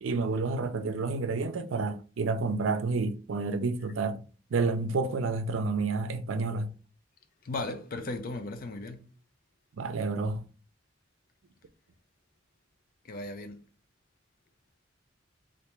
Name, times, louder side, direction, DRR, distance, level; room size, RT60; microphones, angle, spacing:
voice 1, 0.0-4.2 4.5-6.7 9.8-10.5, right 3 dB, 80° right, 0.4 m, -29 dB
voice 2, 7.4-9.1 13.0-13.6, left 2 dB, 50° left, 0.5 m, -36 dB
3.3 x 2.6 x 3.0 m
head